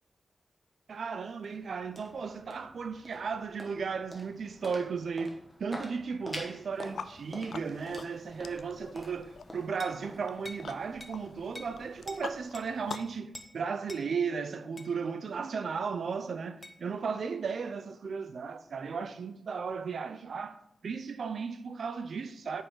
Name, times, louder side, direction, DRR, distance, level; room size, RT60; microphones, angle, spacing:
voice 1, 0.9-22.6, right 5 dB, 70° right, 0.5 m, -35 dB
sound 1, 1.0-13.4, equal, 5° left, 1.4 m, -48 dB
sound 2, 6.7-13.2, left 5 dB, 80° left, 0.4 m, -46 dB
sound 3, 9.8-10.0 10.4-10.7 11.0-11.2 11.5-11.8 12.1-12.2 12.5-13.0 13.3-13.5 13.9-14.1 14.8-14.9 16.6-16.8, left 2 dB, 20° left, 0.6 m, -46 dB
8.9 x 5.4 x 3.8 m
wide cardioid pair, 165°, 0 cm